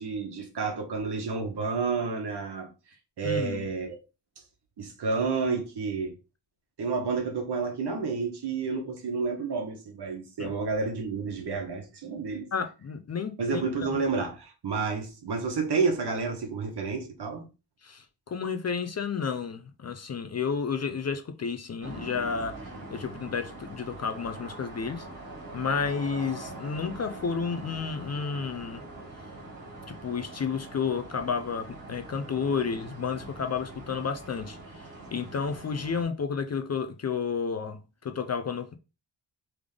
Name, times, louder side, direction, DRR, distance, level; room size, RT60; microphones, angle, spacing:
voice 1, 0.0-2.7 3.2-4.0 4.8-6.1 6.8-12.5 13.4-17.4 32.5-32.6, right 4 dB, 65° right, 1.2 m, -30 dB
voice 2, 3.2-3.7 10.4-10.5 12.5-13.6 13.9-14.0 17.8-22.6 22.9-25.1 25.5-28.8 29.9-34.8 35.1-38.8, left 5 dB, 40° left, 0.4 m, -31 dB
sound 1, 21.8-36.0, right 2 dB, 45° right, 1.7 m, -43 dB
3.6 x 3.5 x 3.3 m
wide cardioid pair, 150°, 43 cm